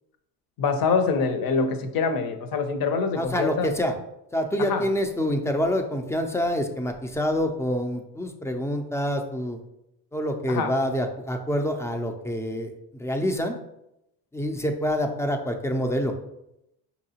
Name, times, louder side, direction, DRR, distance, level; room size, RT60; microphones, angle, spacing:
voice 1, 0.6-3.7 4.7-4.8 10.5-10.7, left 5 dB, 55° left, 8 dB, 0.7 m, -25 dB
voice 2, 3.1-4.0 4.3-9.6 10.1-13.6 14.3-16.1, equal, 5° left, 5 dB, 0.4 m, -26 dB
4.5 x 2.8 x 2.8 m, 0.84 s
supercardioid pair, 80°, 41 cm